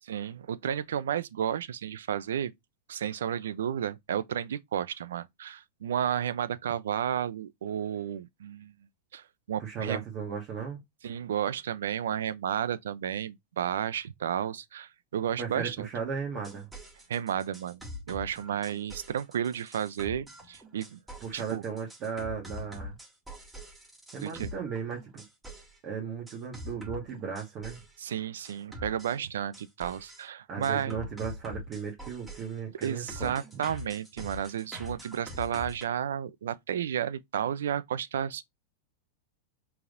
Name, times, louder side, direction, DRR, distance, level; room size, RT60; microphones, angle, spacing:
voice 1, 0.1-2.5 2.9-8.7 9.1-10.0 11.0-15.9 17.1-21.0 21.3-21.6 24.2-24.5 28.0-31.0 32.8-38.4, right 9 dB, 85° right, 0.4 m, -32 dB
voice 2, 9.6-10.8 15.4-16.7 21.2-23.0 24.1-25.2 25.8-27.8 30.5-33.6, right 6 dB, 40° right, 1.5 m, -36 dB
sound 1, 16.3-25.8 26.3-28.0 28.4-30.2 30.6-35.8, left 1 dB, 10° right, 1.6 m, -44 dB
4.6 x 3.4 x 2.5 m
hypercardioid pair, 115°, 0 cm